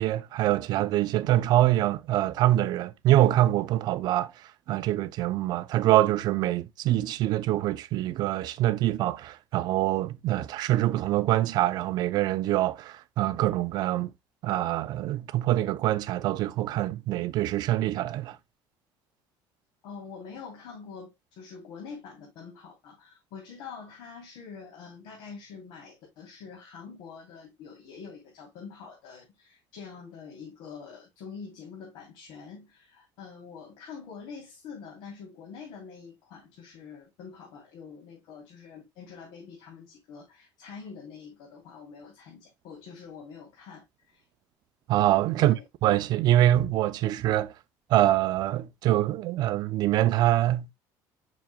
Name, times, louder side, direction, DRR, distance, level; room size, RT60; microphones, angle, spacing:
voice 1, 0.0-14.1 14.4-18.4 44.9-45.6 45.8-47.5 47.9-50.7, right 14 dB, 50° right, 0.6 m, -25 dB
voice 2, 19.8-44.2 45.4-45.6, left 5 dB, 65° left, 3.1 m, -45 dB
7.6 x 6.1 x 2.2 m
cardioid pair, 155°, 9 cm